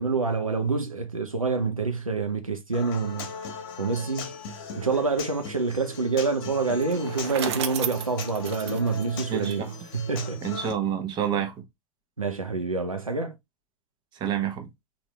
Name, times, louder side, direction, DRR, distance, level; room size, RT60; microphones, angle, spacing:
voice 1, 0.0-4.3 4.8-10.4 12.2-13.3, right 4 dB, 90° right, 0.7 m, -27 dB
Human voice / Acoustic guitar, 2.7-10.7, left 5 dB, 45° left, 1.1 m, -39 dB
Bicycle, 6.7-10.0, right 9 dB, 55° right, 0.6 m, -34 dB
voice 2, 9.3-9.7 10.4-11.7 14.1-14.7, right 9 dB, 25° right, 0.9 m, -28 dB
3.9 x 2.6 x 3.1 m
figure-of-eight pair, 100°, 17 cm